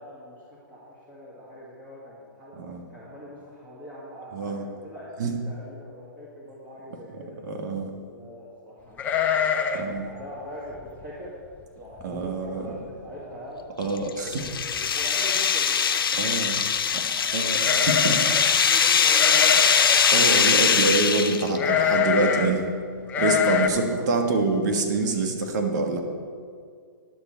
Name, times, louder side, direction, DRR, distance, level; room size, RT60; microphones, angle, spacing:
voice 1, 0.0-2.6 2.9-7.4 8.1-9.1 9.4-11.3 11.7-12.7 13.0-13.7 14.2-16.2 16.9-17.8 18.6-20.2 23.9-24.4, equal, 15° right, -9 dB, 2.1 m, -42 dB
voice 2, 4.3-4.6 5.2-5.3 7.4-7.9 9.7-10.1 12.0-12.6 13.8-14.4 16.2-16.6 17.3-17.6 17.9-18.2 20.1-22.7 23.2-26.0, right 3 dB, 55° right, 4 dB, 1.4 m, -25 dB
sound 1, 9.0-9.9 10.2-10.3 10.8-11.0 11.6-11.7 12.0-12.5 12.8-12.9 14.0-14.1 14.4-14.9 17.5-18.5 19.1-20.1 21.6-22.5 23.1-23.7, left 7 dB, 15° left, 0.5 m, -25 dB
sound 2, 13.8-21.6, left 7 dB, 85° left, 0.6 m, -21 dB
11.0 x 7.3 x 4.4 m, 2.2 s
hypercardioid pair, 145°, 12 cm